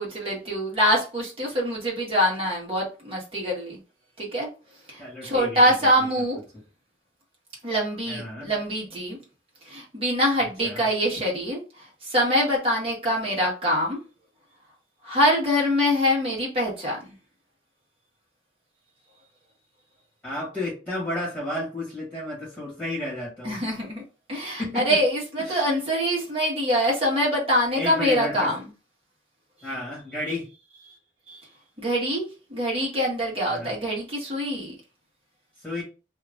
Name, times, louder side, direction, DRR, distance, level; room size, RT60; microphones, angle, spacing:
voice 1, 0.0-3.8 4.2-4.5 4.9-6.4 7.6-9.2 9.6-14.0 15.0-17.1 23.4-24.0 24.3-28.7 31.3-31.4 31.8-34.7, equal, 35° right, -3 dB, 1.4 m, -24 dB
voice 2, 5.0-5.6 8.1-8.5 10.6-10.8 20.2-23.6 24.6-24.9 25.4-25.6 27.7-28.5 29.6-30.5 33.5-33.7 35.6-35.8, left 1 dB, ahead, -7 dB, 1.6 m, -32 dB
2.8 x 2.4 x 3.5 m, 0.32 s
head